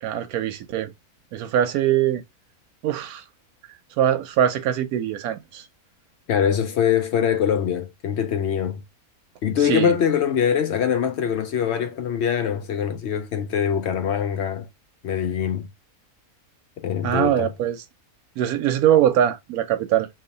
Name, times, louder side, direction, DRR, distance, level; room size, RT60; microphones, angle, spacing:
voice 1, 0.0-0.9 1.3-2.2 2.8-3.2 4.0-5.7 9.6-10.0 17.0-17.8 18.4-20.1, right 10 dB, 90° right, 1.1 m, -22 dB
voice 2, 6.3-8.8 9.4-14.7 15.0-15.7 16.8-17.5, left 8 dB, 65° left, 0.7 m, -23 dB
2.8 x 2.8 x 3.8 m
omnidirectional pair, 1.5 m